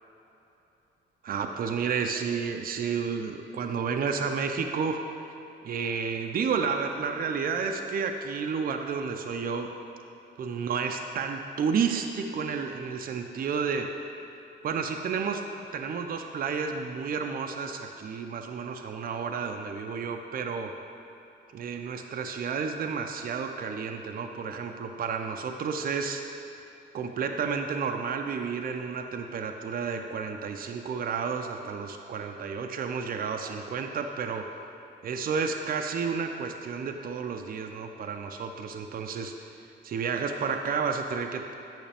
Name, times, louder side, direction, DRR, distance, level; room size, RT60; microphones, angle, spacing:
voice 1, 1.2-5.0 5.6-9.7 10.4-13.9 14.6-15.4 15.7-20.7 21.5-26.2 26.9-34.5 35.0-39.5 39.8-41.5, right 6 dB, 45° right, 4 dB, 0.5 m, -31 dB
8.9 x 5.9 x 3.4 m, 3.0 s
cardioid pair, 90°, 20 cm